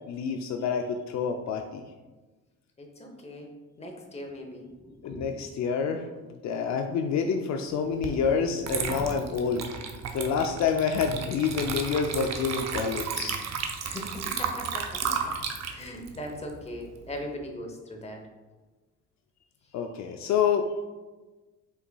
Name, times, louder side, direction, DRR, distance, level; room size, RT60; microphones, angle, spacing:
voice 1, 0.1-1.8 5.0-6.1 6.4-9.7 10.1-13.4 19.7-20.7, left 6 dB, 65° left, 5 dB, 0.4 m, -28 dB
voice 2, 2.8-3.5 3.8-5.3 8.5-8.7 9.4-9.5 9.8-9.9 13.8-15.3 15.7-18.2, equal, 20° left, 2 dB, 0.8 m, -40 dB
Water / Liquid, 8.0-8.2 8.6-17.2, right 6 dB, 60° right, 0.6 m, -33 dB
5.6 x 4.0 x 2.2 m, 1.2 s
cardioid pair, 90°, 30 cm